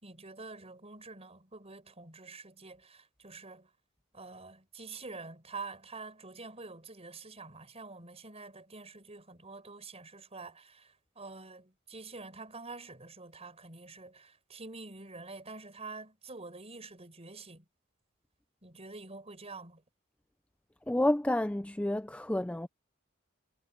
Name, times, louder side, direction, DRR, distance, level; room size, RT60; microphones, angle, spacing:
voice 1, 0.0-3.7 4.1-17.6 18.6-19.8, right 3 dB, 30° right, 4.9 m, -47 dB
voice 2, 20.9-22.7, left 1 dB, 5° left, 0.4 m, -29 dB
head